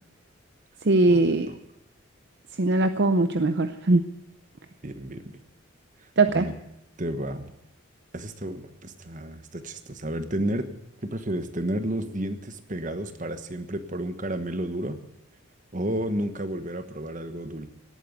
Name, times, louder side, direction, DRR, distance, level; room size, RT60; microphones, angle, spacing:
voice 1, 0.8-1.5 2.6-4.0 6.2-6.5, right 2 dB, 50° right, 10 dB, 0.6 m, -21 dB
voice 2, 4.8-5.4 6.3-6.5 7.0-7.5 8.1-10.7 11.0-15.0 15.7-17.7, right 1 dB, 35° right, 9 dB, 1.3 m, -31 dB
18.0 x 9.2 x 8.1 m, 0.82 s
head